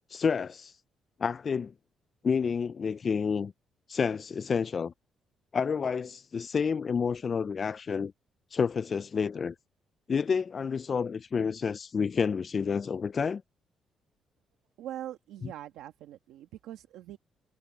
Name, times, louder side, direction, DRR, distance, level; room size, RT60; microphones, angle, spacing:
voice 1, 0.1-0.8 1.2-1.7 2.2-3.5 3.9-4.9 5.5-8.1 8.5-9.5 10.1-13.4, left 6 dB, 45° left, 0.3 m, -29 dB
voice 2, 14.8-17.2, right 12 dB, 90° right, 1.3 m, -42 dB
cardioid pair, 90°, 0 cm